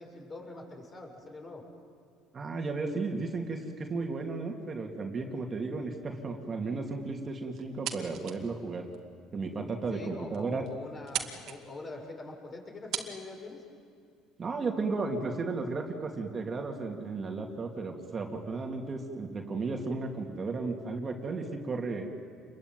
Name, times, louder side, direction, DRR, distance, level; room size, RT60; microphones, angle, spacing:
voice 1, 0.0-1.6 9.9-13.6, left 2 dB, 30° left, 1 dB, 7.0 m, -44 dB
voice 2, 2.3-8.9 9.3-10.7 14.4-22.1, right 3 dB, 35° right, 2 dB, 2.8 m, -34 dB
sound 1, 7.6-8.5 8.9-9.0 9.7-9.8 10.1-10.2 10.3-10.7 11.0-11.6 12.5-12.6 12.9-13.1, right 10 dB, 65° right, 2.4 m, -36 dB
27.5 x 22.5 x 9.3 m, 2.4 s
supercardioid pair, 100°, 0 cm